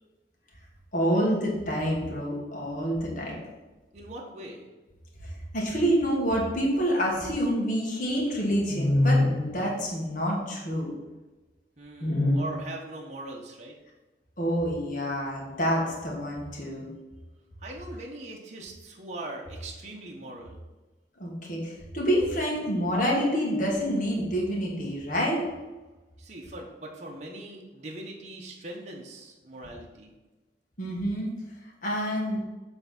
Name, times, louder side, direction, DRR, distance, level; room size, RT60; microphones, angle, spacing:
voice 1, 0.9-3.4 5.2-10.9 12.0-12.4 14.4-16.9 21.2-25.4 30.8-31.3 31.8-32.4, equal, 45° left, -3 dB, 1.7 m, -27 dB
voice 2, 3.9-4.7 11.8-13.8 17.6-20.6 26.2-30.1, right 2 dB, 40° right, -1 dB, 0.9 m, -41 dB
7.7 x 3.5 x 5.8 m, 1.2 s
head